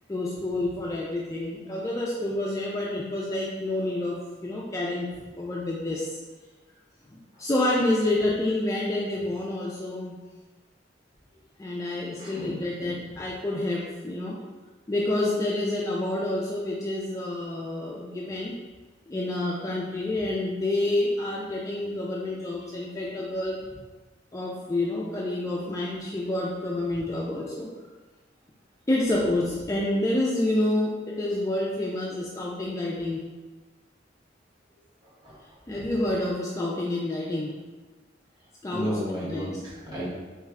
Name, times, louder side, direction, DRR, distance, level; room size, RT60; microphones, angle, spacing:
voice 1, 0.1-6.2 7.4-10.2 11.6-14.4 14.9-18.6 19.1-23.7 24.3-27.7 28.9-33.2 35.7-37.6 38.6-38.9 39.3-39.5, left 1 dB, 15° left, -4 dB, 0.3 m, -28 dB
voice 2, 12.2-13.0 35.0-35.9 38.7-40.1, equal, 25° right, -8 dB, 1.3 m, -34 dB
3.4 x 3.2 x 3.5 m, 1.3 s
head